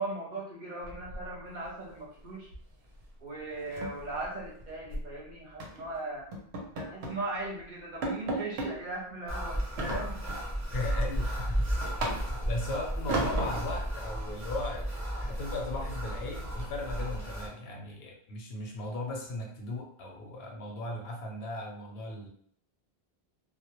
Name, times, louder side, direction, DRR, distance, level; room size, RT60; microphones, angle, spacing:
voice 1, 0.0-2.5 3.2-6.3 6.7-10.2, right 2 dB, 55° right, -4 dB, 0.7 m, -38 dB
sound 1, 0.8-1.7 1.9-2.2 2.5-2.7 3.0-3.1 3.5-5.1 5.6-5.9 6.3-7.2 7.6-7.7 8.0-8.7 9.8-10.5 10.9-12.5 13.1-13.8, right 2 dB, 85° right, 0.9 m, -35 dB
sound 2, 9.3-17.5, equal, 25° right, 0.4 m, -34 dB
voice 2, 10.7-11.7 12.0-22.3, left 2 dB, 80° left, 1 dB, 0.8 m, -37 dB
2.1 x 2.0 x 2.8 m, 0.62 s
omnidirectional pair, 1.0 m